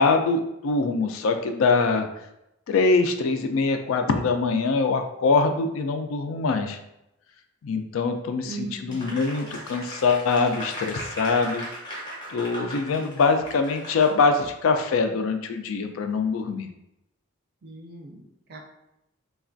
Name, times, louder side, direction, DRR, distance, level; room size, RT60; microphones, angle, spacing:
voice 1, 0.0-2.1 2.7-6.8 7.6-11.6 11.9-12.0 12.3-16.7, left 4 dB, 80° left, 7 dB, 0.3 m, -23 dB
voice 2, 8.5-9.2 17.6-18.2 18.5-18.7, right 4 dB, 50° right, 2 dB, 0.4 m, -39 dB
Applause, 8.9-14.5, equal, 20° left, 0.6 m, -38 dB
3.2 x 2.3 x 2.5 m, 0.85 s
head